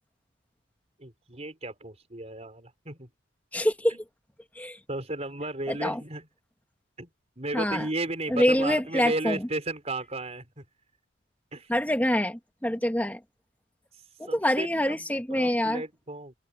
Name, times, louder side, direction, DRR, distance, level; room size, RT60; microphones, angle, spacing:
voice 1, 1.0-3.1 4.9-6.3 7.0-7.1 7.4-10.6 11.5-11.7 14.3-15.0 15.3-16.3, right 2 dB, 35° right, 4.6 m, -34 dB
voice 2, 3.5-4.0 4.5-4.8 5.7-6.0 7.5-7.9 8.3-9.5 11.7-13.2 14.2-15.8, equal, 10° left, 2.3 m, -26 dB
head